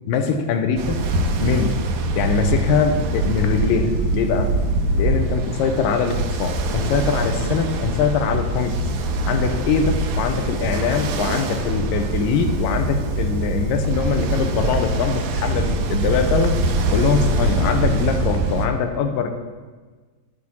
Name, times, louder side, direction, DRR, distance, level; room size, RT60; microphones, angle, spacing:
voice 1, 0.1-1.0 1.4-1.8 2.2-4.5 4.9-8.8 9.3-16.6 16.9-19.3, left 6 dB, 80° left, 6 dB, 2.4 m, -22 dB
Ocean, 0.8-18.7, right 2 dB, 75° right, 1.9 m, -23 dB
9.8 x 8.6 x 4.3 m, 1.4 s
omnidirectional pair, 4.0 m